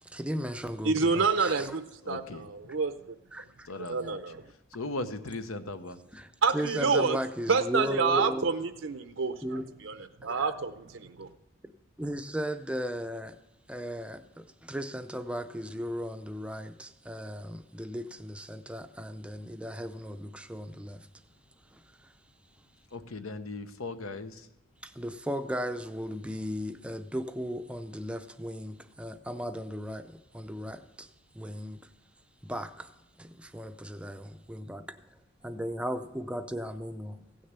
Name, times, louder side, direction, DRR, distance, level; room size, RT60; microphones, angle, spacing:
voice 1, 0.0-1.8 3.3-3.7 6.1-8.5 9.4-9.7 10.2-10.5 11.6-11.7 12.0-13.4 13.7-21.1 21.7-22.1 24.8-31.9 32.4-32.9 33.2-35.0 35.4-37.2, equal, 5° right, 0.5 m, -36 dB
voice 2, 0.8-2.9 3.9-4.4 6.4-7.2 7.5-9.3 9.8-9.9 10.2-11.3, right 5 dB, 60° right, 0.6 m, -28 dB
voice 3, 2.0-2.5 3.7-4.4 4.7-6.0 22.9-24.5, left 2 dB, 75° left, 0.9 m, -38 dB
16.0 x 6.6 x 8.1 m
head